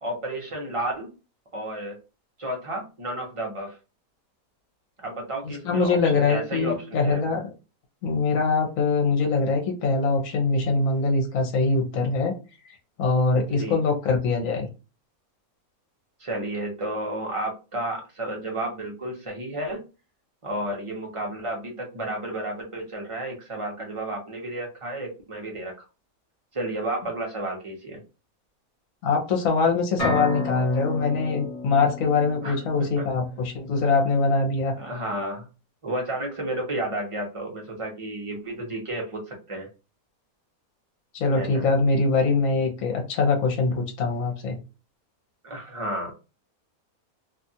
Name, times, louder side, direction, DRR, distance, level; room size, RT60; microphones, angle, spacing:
voice 1, 0.0-1.1 1.5-2.0 2.4-3.8 5.0-7.2 13.5-13.8 16.2-19.8 20.4-25.7 26.5-28.0 32.4-33.0 34.8-35.5 35.8-39.7 41.3-41.7 45.4-46.1, right 1 dB, 30° right, 0 dB, 0.7 m, -32 dB
voice 2, 5.6-7.5 8.0-12.3 13.0-14.7 29.0-34.7 41.1-44.6, left 4 dB, 65° left, 2 dB, 1.2 m, -23 dB
sound 1, 30.0-33.7, left 2 dB, 35° left, 1.3 m, -33 dB
2.7 x 2.4 x 2.7 m, 0.30 s
omnidirectional pair, 1.5 m